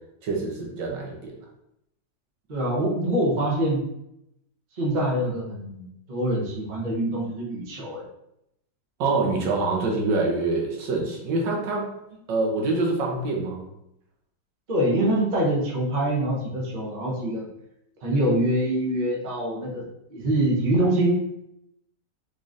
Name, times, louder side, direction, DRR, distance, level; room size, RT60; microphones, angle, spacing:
voice 1, 0.2-1.3 9.0-11.9 12.3-13.7, right 3 dB, 75° right, -1 dB, 1.4 m, -25 dB
voice 2, 2.5-3.8 4.8-8.1 14.7-17.5 18.0-19.8 20.1-21.2, right 1 dB, 45° right, -3 dB, 0.6 m, -24 dB
4.0 x 3.1 x 2.5 m, 0.81 s
omnidirectional pair, 2.0 m